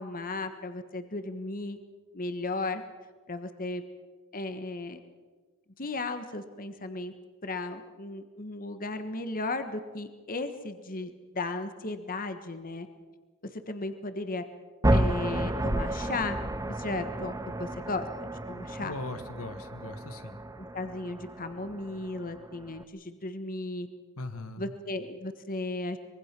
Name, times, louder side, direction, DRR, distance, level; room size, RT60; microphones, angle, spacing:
voice 1, 0.0-1.8 2.1-2.8 3.3-3.8 4.3-5.0 5.8-7.1 7.4-12.9 13.4-14.4 14.9-16.4 16.7-17.3 17.6-18.9 20.7-23.9 24.6-26.0, left 2 dB, 40° left, 9 dB, 1.5 m, -35 dB
sound 1, 14.8-22.8, right 1 dB, 15° right, 0.9 m, -32 dB
voice 2, 18.8-20.4 24.2-24.7, left 2 dB, 75° left, 8 dB, 1.6 m, -39 dB
24.5 x 23.0 x 6.1 m, 1.4 s
head